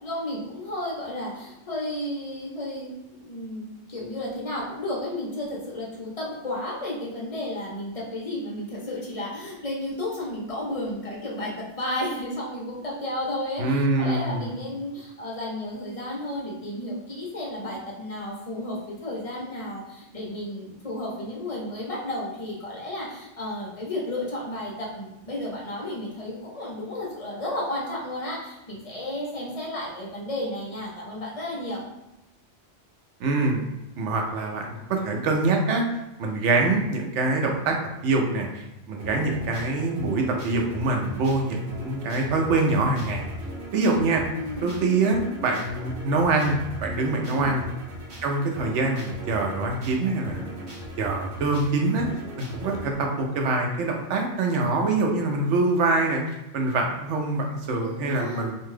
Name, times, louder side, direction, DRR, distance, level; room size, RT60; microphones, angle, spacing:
voice 1, 0.0-31.8 44.3-44.8 47.3-47.5 57.8-58.5, left 1 dB, 35° left, -5 dB, 0.6 m, -33 dB
voice 2, 13.6-14.5 33.2-33.6 34.0-35.8 36.2-37.8 38.0-43.3 43.7-44.2 44.6-47.7 48.2-52.1 52.4-58.6, right 3 dB, 75° right, 2 dB, 0.9 m, -25 dB
sound 1, 39.0-52.9, equal, 50° right, 1.0 m, -39 dB
2.6 x 2.3 x 3.1 m, 0.93 s
omnidirectional pair, 1.3 m